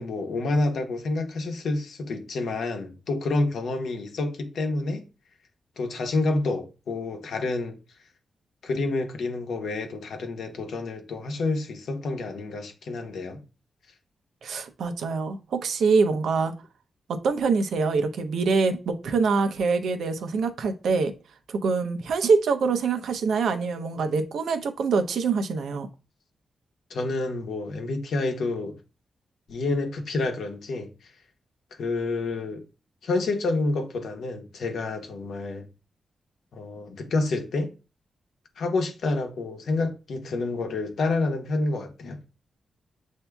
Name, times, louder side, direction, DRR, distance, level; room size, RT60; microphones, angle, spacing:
voice 1, 0.0-5.0 5.8-7.8 8.6-13.4 26.9-28.8 29.5-30.9 31.8-32.6 33.0-35.7 36.5-37.7 38.6-42.2, left 3 dB, 80° left, 0.9 m, -28 dB
voice 2, 14.4-16.5 17.1-21.1 21.5-25.9, right 4 dB, 85° right, 0.6 m, -24 dB
7.9 x 2.7 x 2.3 m
wide cardioid pair, 125°, 0 cm